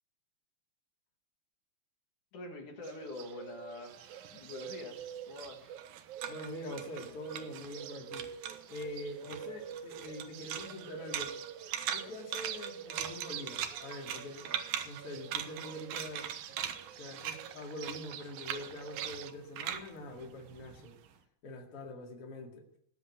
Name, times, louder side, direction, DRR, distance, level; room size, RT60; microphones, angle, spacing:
voice 1, 2.3-5.8, left 2 dB, 65° left, 2 dB, 3.6 m, -46 dB
Bird, 2.8-19.3, right 9 dB, 70° right, 2.2 m, -47 dB
sound 1, 3.9-7.9 8.1-8.9 9.2-21.1, right 9 dB, 90° right, 2.9 m, -41 dB
voice 2, 6.3-8.3 8.7-11.3 11.9-14.5 14.8-16.3 17.0-21.0 21.4-22.6, left 1 dB, 45° left, 1 dB, 3.0 m, -44 dB
18.0 x 7.8 x 9.6 m, 0.72 s
omnidirectional pair, 3.8 m